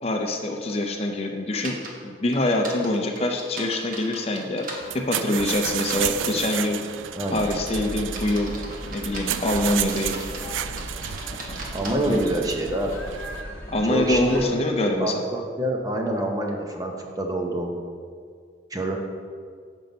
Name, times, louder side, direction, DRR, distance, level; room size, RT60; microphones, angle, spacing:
voice 1, 0.0-4.7 4.9-6.8 7.3-8.6 8.8-10.2 11.3-11.6 12.0-12.2 13.7-15.2, left 1 dB, 30° left, 3 dB, 0.6 m, -25 dB
sound 1, 1.6-1.9 2.3-4.8 5.8-6.6 7.2-7.5 8.0-10.5 10.8-11.9, right 2 dB, 45° right, 1.2 m, -38 dB
sound 2, 4.8-13.4, right 10 dB, 85° right, 0.3 m, -32 dB
sound 3, 7.3-14.4, equal, 15° left, 1.7 m, -37 dB
voice 2, 11.7-12.9 13.8-14.6 15.0-17.8 18.7-19.0, right 1 dB, 20° right, 2 dB, 0.7 m, -26 dB
7.6 x 5.3 x 5.3 m, 2.1 s
head